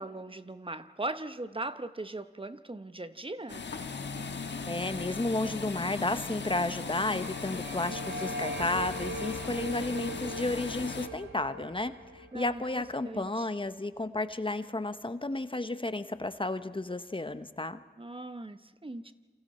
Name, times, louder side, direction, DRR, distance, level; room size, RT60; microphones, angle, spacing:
voice 1, 0.0-3.6 12.3-13.5 18.0-19.1, right 2 dB, 30° right, 11 dB, 1.0 m, -39 dB
sound 1, 3.5-11.1, left 4 dB, 80° left, 1.3 m, -38 dB
voice 2, 4.7-17.8, left 2 dB, 30° left, 11 dB, 0.9 m, -32 dB
sound 2, 6.3-13.3, right 1 dB, 75° right, 1.9 m, -41 dB
28.0 x 25.5 x 4.3 m, 1.4 s
cardioid pair, 45°, 18 cm